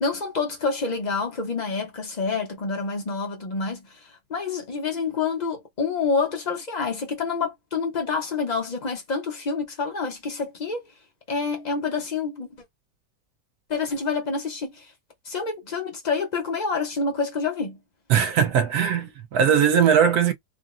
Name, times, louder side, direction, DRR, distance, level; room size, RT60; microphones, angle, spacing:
voice 1, 0.0-10.8 11.3-12.6 13.7-14.9 15.2-17.8, left 4 dB, 50° left, 0.5 m, -28 dB
voice 2, 18.1-20.3, right 8 dB, 75° right, 1.1 m, -20 dB
3.6 x 2.0 x 2.4 m
omnidirectional pair, 1.8 m